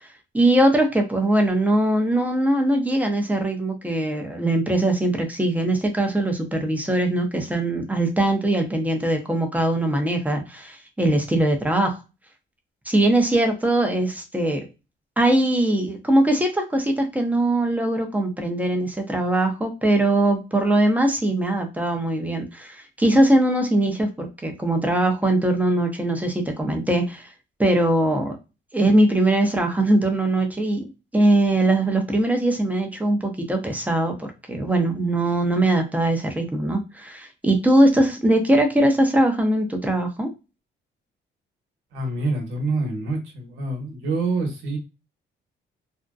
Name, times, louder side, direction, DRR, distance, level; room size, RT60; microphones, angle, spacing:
voice 1, 0.3-12.0 12.9-14.7 15.2-27.3 27.6-28.4 28.7-30.9 31.1-40.3, right 1 dB, 10° right, 0.7 m, -21 dB
voice 2, 41.9-44.8, right 3 dB, 85° right, 0.9 m, -26 dB
2.6 x 2.1 x 2.3 m
cardioid pair, 90°, 20 cm